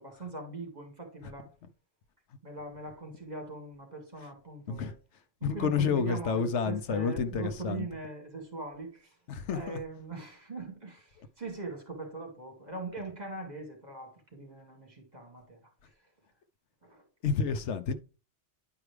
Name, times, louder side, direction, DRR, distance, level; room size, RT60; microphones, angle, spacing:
voice 1, 0.0-1.5 2.4-4.9 5.4-9.1 9.5-15.6 16.8-17.0, right 3 dB, 35° right, 2.5 m, -41 dB
voice 2, 5.4-7.9 9.3-9.8 17.2-17.9, left 6 dB, 75° left, 1.0 m, -29 dB
10.5 x 4.8 x 3.2 m
omnidirectional pair, 1.2 m